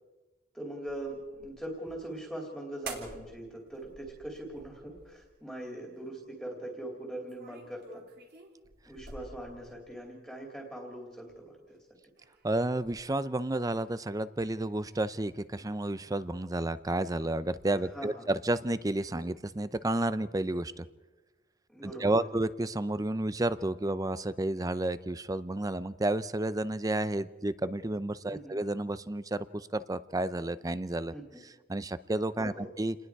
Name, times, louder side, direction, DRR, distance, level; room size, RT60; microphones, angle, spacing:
voice 1, 0.5-8.0 8.8-11.8 17.9-18.3 21.7-22.3 28.3-28.6 31.1-31.4 32.4-32.7, right 1 dB, ahead, -1 dB, 2.8 m, -41 dB
sound 1, 0.9-2.2 2.8-3.4 3.7-5.4 7.2-10.1 11.3-11.8 12.2-13.3 14.5-16.5 16.8-18.3, right 3 dB, 55° right, 3.7 m, -50 dB
voice 2, 12.4-20.9 21.8-31.1 31.4-33.0, right 1 dB, 20° right, 15 dB, 0.6 m, -31 dB
29.5 x 20.0 x 4.7 m, 1.2 s
head